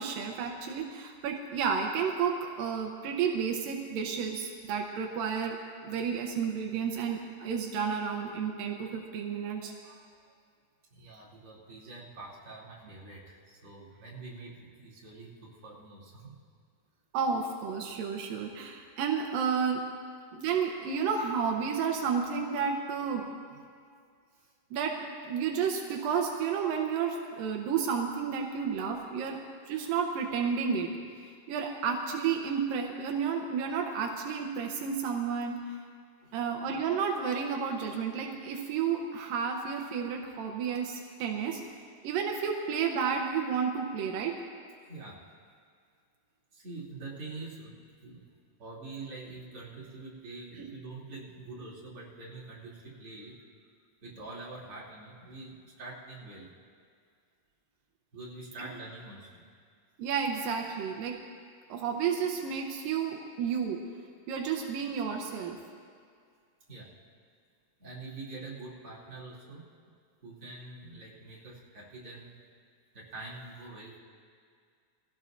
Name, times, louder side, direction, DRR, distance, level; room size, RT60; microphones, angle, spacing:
voice 1, 0.0-9.7 17.1-19.9 20.3-23.3 24.7-35.8 36.3-41.6 42.0-44.4 50.6-50.7 60.0-61.2 61.7-63.9 64.3-65.6, right 6 dB, 85° right, 1 dB, 2.6 m, -31 dB
voice 2, 10.9-16.4 20.0-20.1 23.0-23.1 24.3-24.5 36.2-36.4 44.9-45.3 46.5-48.3 48.6-53.4 54.0-56.5 58.1-59.4 66.7-67.0 67.8-69.7 70.2-72.4 72.9-74.0, right 3 dB, 40° right, -8 dB, 3.7 m, -45 dB
23.0 x 16.0 x 2.6 m, 2.2 s
omnidirectional pair, 4.0 m